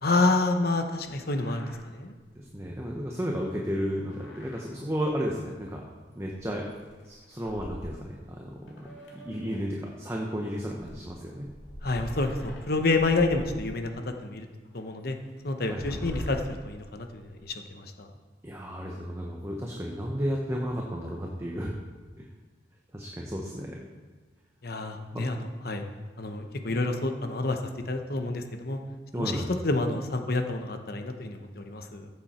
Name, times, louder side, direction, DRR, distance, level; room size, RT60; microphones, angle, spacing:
voice 1, 0.0-2.1 11.8-13.9 14.2-14.5 14.7-15.1 15.4-18.1 24.6-25.8 26.2-27.6 27.9-28.8 29.2-32.1, left 2 dB, 55° left, 5 dB, 1.0 m, -28 dB
sound 1, 1.4-1.8 2.2-2.3 2.5-2.7 4.0-4.7 5.0-5.1 6.3-6.4 6.7-8.3 8.7-9.7 10.5-14.1 14.6-14.7 15.5-17.5, equal, 75° left, 2.4 m, -42 dB
voice 2, 2.4-5.8 6.2-6.6 7.0-8.8 9.1-11.5 15.7-16.4 18.4-21.7 22.2-22.3 22.9-23.9 25.1-25.2 29.1-29.5, equal, 15° right, -1 dB, 1.0 m, -33 dB
15.0 x 7.5 x 4.4 m, 1.3 s
head